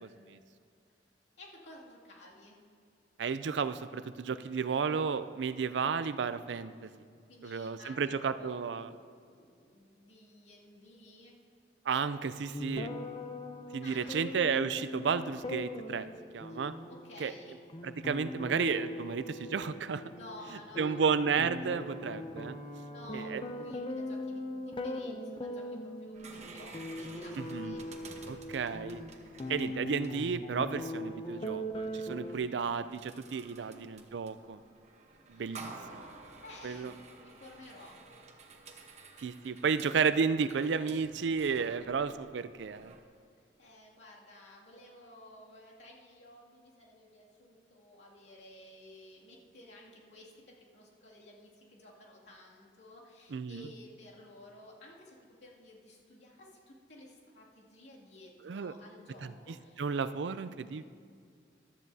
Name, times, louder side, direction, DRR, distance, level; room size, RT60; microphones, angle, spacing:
voice 1, 0.0-0.4 3.2-6.9 7.4-8.9 11.9-12.9 13.7-16.1 16.3-16.7 17.2-17.3 17.8-20.0 20.8-22.6 23.1-23.4 27.4-27.8 28.3-29.0 29.5-34.6 35.3-36.0 36.6-36.9 39.2-42.9 53.3-53.7 58.5-58.7 59.8-60.8, right 5 dB, 80° right, 13 dB, 0.4 m, -32 dB
voice 2, 1.4-2.6 7.3-8.6 8.9-11.4 13.8-14.2 16.5-16.6 16.9-17.6 20.1-21.0 22.9-27.9 33.5-33.8 35.3-35.8 36.4-38.0 43.6-59.8, left 1 dB, 85° left, -4 dB, 2.4 m, -54 dB
sound 1, 12.5-32.4, left 1 dB, 30° left, 0.6 m, -40 dB
sound 2, 26.1-43.0, right 3 dB, 40° right, 1.0 m, -53 dB
15.0 x 12.5 x 2.7 m, 2.2 s
head